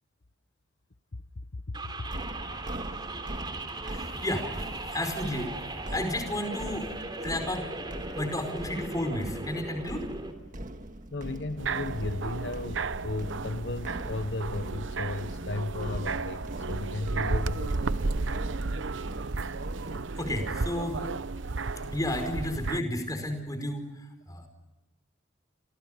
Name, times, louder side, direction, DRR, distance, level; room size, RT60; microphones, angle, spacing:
voice 1, 1.5-2.1 11.1-18.1 21.6-22.0, left 2 dB, 70° left, 10 dB, 1.0 m, -35 dB
sound 1, 1.7-10.3, right 2 dB, 25° right, 3.4 m, -38 dB
sound 2, 2.1-20.7, right 1 dB, 45° right, 1.8 m, -42 dB
voice 2, 3.9-4.7 4.9-5.6 5.9-6.9 7.2-7.7 8.1-10.1 20.2-21.0 21.9-24.5, left 1 dB, 20° left, 6 dB, 5.0 m, -32 dB
sound 3, 11.6-22.8, right 3 dB, 85° right, 0.9 m, -33 dB
29.5 x 27.5 x 5.2 m, 1.1 s
head